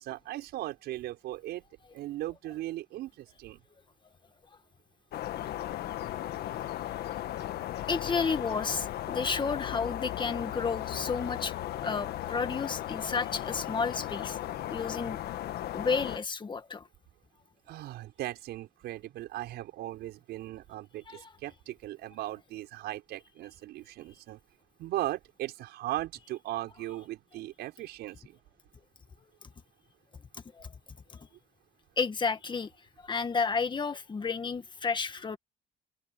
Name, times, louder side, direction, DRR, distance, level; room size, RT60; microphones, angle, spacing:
voice 1, 0.0-1.6 1.9-3.6 17.7-24.4 24.8-28.4, right 15 dB, 80° right, 6.2 m, -38 dB
sound 1, 5.1-16.2, left 13 dB, 70° left, 1.7 m, -36 dB
voice 2, 7.9-11.5 11.8-14.4 14.7-15.2 15.7-16.8 21.1-21.3 30.6-30.7 32.0-32.7 33.1-35.4, left 5 dB, 30° left, 2.0 m, -31 dB
open air
cardioid pair, 110°, 17 cm